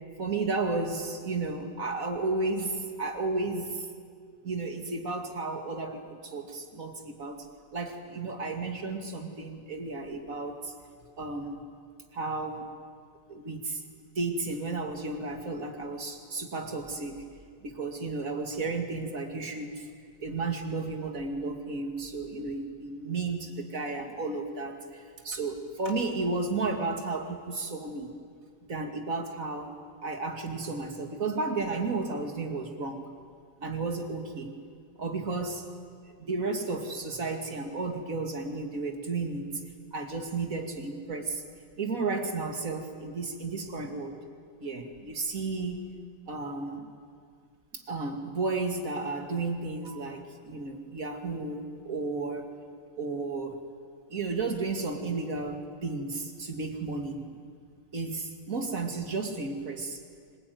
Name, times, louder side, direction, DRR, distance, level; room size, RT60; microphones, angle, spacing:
voice 1, 0.2-3.9 4.4-7.5 7.7-10.7 11.2-11.6 12.1-12.7 13.3-13.8 14.2-17.2 17.6-19.9 20.2-28.2 28.7-29.7 30.0-33.1 33.6-34.5 35.0-35.7 36.2-39.5 39.9-41.4 41.8-44.1 44.6-45.8 46.3-46.9 47.7-52.4 53.0-53.6 54.1-57.3 57.9-60.0, right 3 dB, 70° right, 4 dB, 2.7 m, -33 dB
25.5 x 21.5 x 9.4 m, 2.1 s
omnidirectional pair, 1.5 m